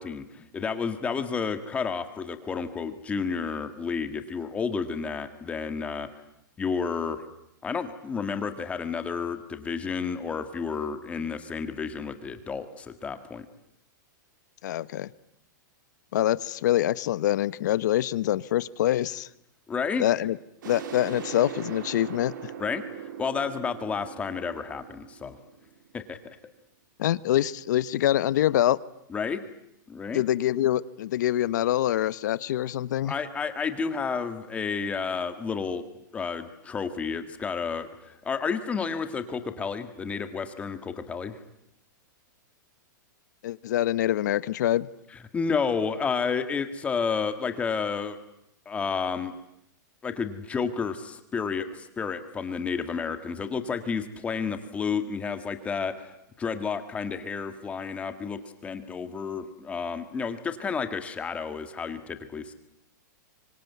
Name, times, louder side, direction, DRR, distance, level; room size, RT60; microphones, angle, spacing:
voice 1, 0.0-6.1 6.6-7.3 7.6-13.4 19.7-20.0 22.6-22.8 23.2-25.4 25.9-26.2 29.1-29.4 29.9-30.2 33.0-35.8 36.1-41.4 45.1-48.2 48.6-49.3 50.0-62.5, left 5 dB, 10° left, 9 dB, 1.7 m, -31 dB
voice 2, 14.6-15.1 16.1-19.3 20.0-20.4 20.6-22.5 27.0-28.8 30.1-33.1 43.4-44.9, left 12 dB, 60° left, 18 dB, 1.1 m, -25 dB
sound 1, 20.6-26.1, right 9 dB, 70° right, 4.1 m, -40 dB
24.5 x 24.5 x 9.5 m, 0.78 s
supercardioid pair, 165°, 11 cm